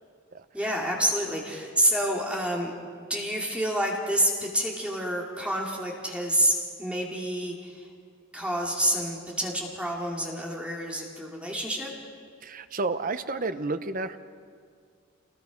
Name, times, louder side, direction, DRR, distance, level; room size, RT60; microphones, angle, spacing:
voice 1, 0.5-2.7 3.1-7.9 8.3-11.9, equal, 5° right, -2 dB, 2.4 m, -28 dB
voice 2, 12.4-14.2, right 3 dB, 40° right, 10 dB, 0.8 m, -31 dB
27.5 x 20.5 x 5.2 m, 2.1 s
head